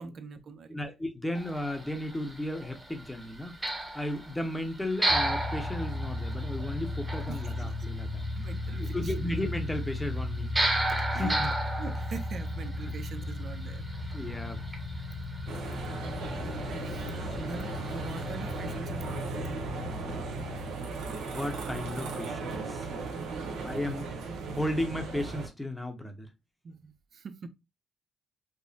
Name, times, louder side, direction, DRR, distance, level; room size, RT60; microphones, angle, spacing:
voice 1, 0.0-0.8 7.3-7.6 8.3-9.1 11.1-11.4 11.8-13.8 16.8-17.1 17.4-19.3 23.1-23.6 26.6-27.5, right 5 dB, 55° right, 0.5 m, -43 dB
voice 2, 0.7-3.5 3.9-8.2 8.8-10.8 11.1-11.5 14.1-14.6 21.3-22.9 23.6-26.3, left 1 dB, 10° left, 0.8 m, -35 dB
sound 1, 1.3-18.8, right 1 dB, 15° right, 1.0 m, -36 dB
sound 2, 5.1-20.7, left 2 dB, 45° left, 0.4 m, -36 dB
sound 3, 15.5-25.5, right 4 dB, 85° right, 0.9 m, -37 dB
4.9 x 2.0 x 2.7 m
cardioid pair, 90°, 0 cm